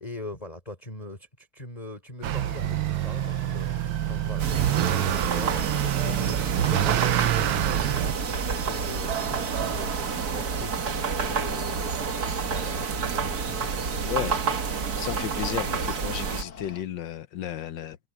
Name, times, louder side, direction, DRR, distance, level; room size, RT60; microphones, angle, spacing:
voice 1, 0.0-14.1, left 2 dB, 15° left, 4.5 m, -41 dB
Mechanical fan, 2.2-16.8, left 6 dB, 45° left, 1.3 m, -45 dB
Motor vehicle (road) / Accelerating revving vroom, 2.2-8.1, right 13 dB, 80° right, 1.7 m, -26 dB
sound 1, 4.4-16.4, right 6 dB, 50° right, 1.9 m, -29 dB
voice 2, 14.0-14.4 15.0-18.0, left 11 dB, 65° left, 1.5 m, -33 dB
omnidirectional pair, 2.3 m